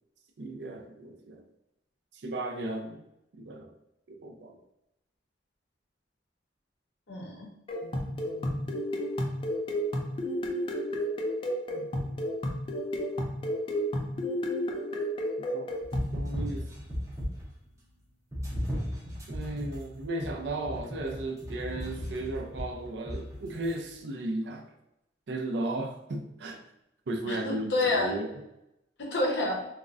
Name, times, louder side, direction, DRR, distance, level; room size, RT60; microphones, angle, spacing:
voice 1, 0.4-1.4 2.1-3.0 3.3-3.7 4.1-4.6 7.8-8.7 11.7-12.2 15.5-15.7 16.1-16.7 19.3-24.7 25.3-26.6 27.1-28.3, right 2 dB, 70° right, 3 dB, 0.5 m, -35 dB
voice 2, 7.1-7.5 27.3-28.2 29.0-29.7, left 2 dB, 75° left, 0 dB, 0.7 m, -29 dB
sound 1, 7.7-16.2, equal, 30° left, 0.3 m, -32 dB
sound 2, 15.8-17.6 18.3-23.7, equal, 15° right, 0.6 m, -36 dB
3.7 x 2.0 x 2.4 m, 0.85 s
head